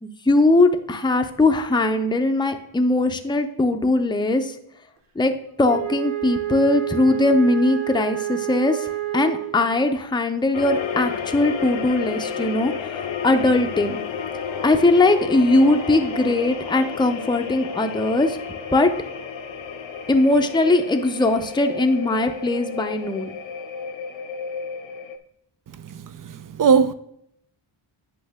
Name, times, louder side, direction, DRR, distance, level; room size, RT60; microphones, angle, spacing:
voice 1, 0.0-4.6 5.2-5.3 5.6-14.0 14.6-18.4 18.7-18.9 20.1-23.3, left 2 dB, 10° left, 0.6 m, -20 dB
Wind instrument woodwind instrument, 5.6-9.9, right 14 dB, 85° right, 1.1 m, -29 dB
sound 1, 10.5-25.2, left 6 dB, 70° left, 0.8 m, -31 dB
voice 2, 25.8-26.9, right 6 dB, 45° right, 0.5 m, -20 dB
8.7 x 5.3 x 3.5 m
wide cardioid pair, 85°, 48 cm